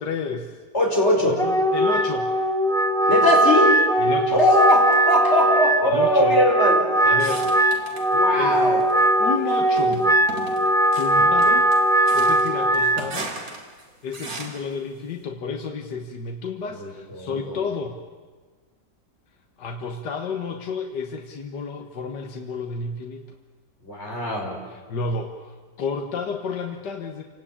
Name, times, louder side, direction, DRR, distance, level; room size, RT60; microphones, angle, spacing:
voice 1, 0.0-0.6 1.2-2.3 4.0-4.4 5.8-6.4 7.0-7.5 8.4-8.6 9.2-10.1 11.0-11.7 12.1-13.3 14.0-18.0 19.6-23.4 24.7-27.2, left 4 dB, 75° left, 4 dB, 1.9 m, -31 dB
voice 2, 0.7-1.4 3.1-3.8 4.3-6.8 8.1-8.8 16.7-17.6 23.8-24.6, left 1 dB, 40° left, -1 dB, 5.8 m, -21 dB
Wind instrument woodwind instrument, 1.3-13.0, right 1 dB, ahead, 1.3 m, -20 dB
sound 1, 7.2-8.1 8.5-9.1 9.8-14.7, right 3 dB, 55° right, 3.1 m, -37 dB
28.0 x 19.0 x 8.7 m, 1.4 s
omnidirectional pair, 1.8 m